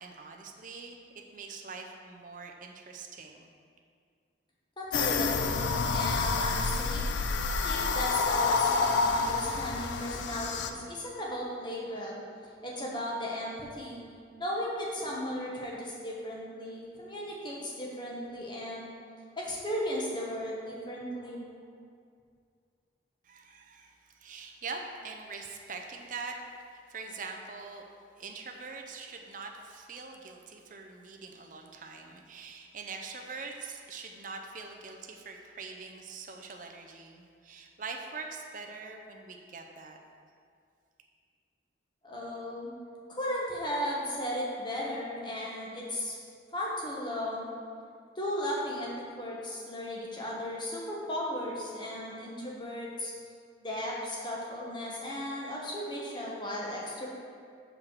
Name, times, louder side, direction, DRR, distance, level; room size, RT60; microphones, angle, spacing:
voice 1, 0.0-3.5 23.2-26.3 26.7-27.8 28.2-40.0, right 4 dB, 45° right, 2 dB, 0.6 m, -43 dB
voice 2, 4.8-7.0 7.4-12.2 12.6-14.0 14.4-18.9 19.4-21.4 42.0-42.7 43.1-46.2 46.5-47.4 48.1-48.9 49.2-53.1 53.6-57.1, left 1 dB, 25° left, -4 dB, 1.3 m, -36 dB
sound 1, 4.9-10.7, left 4 dB, 80° left, 0.5 m, -28 dB
5.9 x 4.7 x 6.5 m, 2.2 s
head